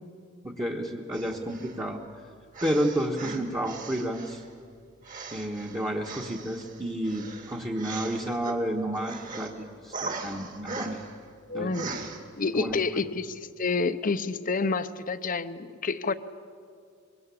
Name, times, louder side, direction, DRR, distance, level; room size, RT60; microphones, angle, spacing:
voice 1, 0.4-2.0 2.6-4.4 5.3-11.0 11.5-12.1 12.6-12.8, right 1 dB, 20° right, -2 dB, 1.4 m, -31 dB
sound 1, 1.1-1.8 2.5-4.5 5.0-8.6 8.9-9.5 9.9-11.2 11.7-12.2, right 3 dB, 40° right, 2.5 m, -39 dB
voice 2, 11.5-11.9 12.4-16.1, left 4 dB, 45° left, 12 dB, 0.8 m, -29 dB
25.0 x 23.5 x 8.5 m, 2.3 s
head